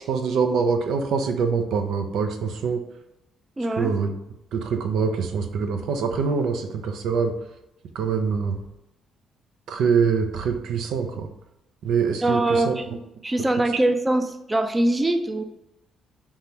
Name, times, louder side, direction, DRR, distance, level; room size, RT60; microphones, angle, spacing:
voice 1, 0.1-2.8 3.8-4.1 4.5-7.3 7.9-8.6 9.7-11.3 11.8-12.8, right 5 dB, 80° right, 6 dB, 0.5 m, -24 dB
voice 2, 3.6-3.9 12.2-12.9 13.2-15.4, right 1 dB, 20° right, 6 dB, 0.5 m, -22 dB
3.6 x 2.9 x 4.5 m, 0.91 s
cardioid pair, 90°, 0 cm